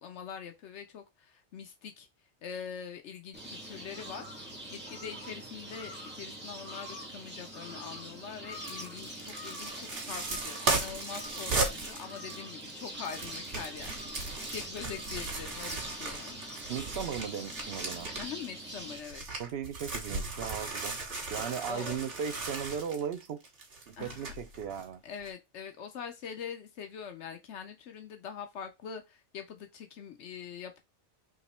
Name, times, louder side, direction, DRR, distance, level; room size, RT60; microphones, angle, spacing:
voice 1, 0.0-2.1 2.4-16.4 18.2-19.2 21.7-22.0 24.0-24.3 25.0-30.8, left 7 dB, 80° left, 1.0 m, -43 dB
sound 1, 3.3-19.0, right 1 dB, 10° right, 1.8 m, -43 dB
sound 2, 8.5-18.5 18.8-24.9 25.2-25.3, right 3 dB, 85° right, 1.8 m, -37 dB
voice 2, 16.7-18.1 19.4-21.0 21.3-23.4 23.9-25.0, right 7 dB, 65° right, 0.8 m, -37 dB
3.7 x 3.0 x 4.2 m
omnidirectional pair, 1.2 m